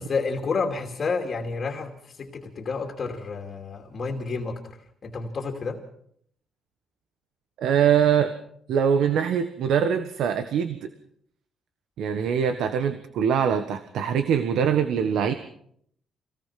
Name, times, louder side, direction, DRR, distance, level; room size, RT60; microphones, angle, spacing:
voice 1, 0.0-4.8 5.0-5.8, left 4 dB, 40° left, 1 dB, 2.7 m, -30 dB
voice 2, 7.6-8.3 8.7-10.9 12.0-15.3, right 8 dB, 75° right, 9 dB, 1.4 m, -23 dB
25.5 x 18.0 x 5.9 m, 0.67 s
cardioid pair, 125°, 0 cm